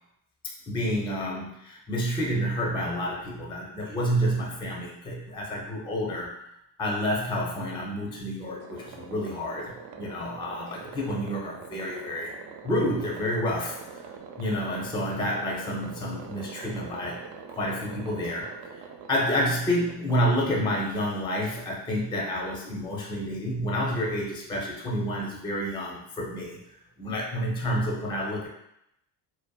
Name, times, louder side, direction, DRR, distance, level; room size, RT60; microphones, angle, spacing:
voice 1, 0.7-6.3 6.8-12.3 12.6-14.0 14.4-17.2 17.6-26.6 27.0-28.5, equal, 10° left, -2 dB, 0.5 m, -29 dB
sound 1, 8.6-21.2, right 6 dB, 60° right, 0.5 m, -44 dB
2.7 x 2.1 x 2.2 m, 0.81 s
supercardioid pair, 75°, 47 cm